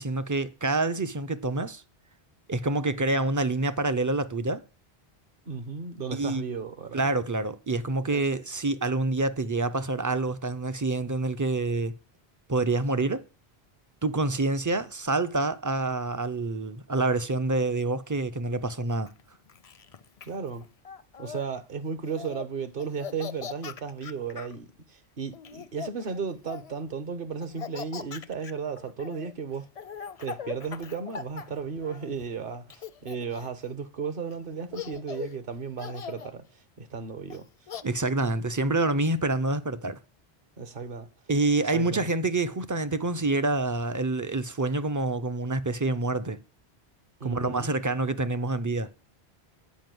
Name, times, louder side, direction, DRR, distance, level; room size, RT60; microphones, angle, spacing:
voice 1, 0.0-1.8 2.5-4.6 6.1-6.4 6.9-11.9 12.5-13.2 14.0-19.1 37.8-40.0 41.3-46.4 47.2-48.9, right 2 dB, 30° right, 0.4 m, -27 dB
voice 2, 5.5-7.1 8.1-8.4 20.2-20.7 21.2-29.7 30.2-37.5 40.6-41.1 41.6-42.1 47.2-47.7, right 5 dB, 60° right, 1.2 m, -35 dB
Laughter, 19.1-21.5 22.0-22.5 22.8-24.6 25.3-26.8 27.4-32.3 32.7-33.7 34.3-34.4 34.7-35.4 35.8-36.3 37.3-37.8, left 7 dB, 45° left, 0.5 m, -41 dB
9.2 x 5.1 x 7.7 m
omnidirectional pair, 1.1 m